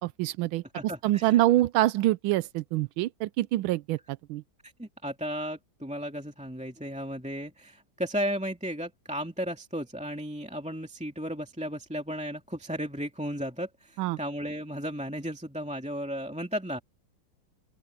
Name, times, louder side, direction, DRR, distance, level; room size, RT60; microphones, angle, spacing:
voice 1, 0.0-0.6 1.0-4.0 4.3-4.4 14.0-14.2, right 15 dB, 90° right, 1.4 m, -25 dB
voice 2, 0.7-1.4 4.6-16.8, equal, 5° right, 2.3 m, -34 dB
open air
omnidirectional pair, 2.2 m